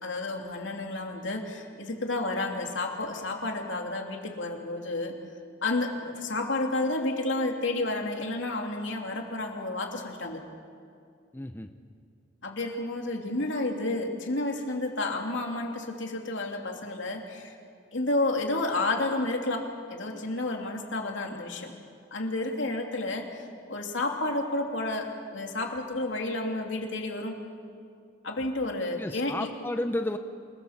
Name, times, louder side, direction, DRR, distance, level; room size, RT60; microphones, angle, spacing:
voice 1, 0.0-5.1 5.6-10.4 12.4-17.6 17.9-21.7 22.1-27.3 28.2-29.5, left 2 dB, 80° left, 2 dB, 2.9 m, -31 dB
voice 2, 11.3-11.7 29.0-30.2, left 1 dB, 10° left, 7 dB, 0.7 m, -32 dB
27.5 x 19.5 x 7.4 m, 2.3 s
head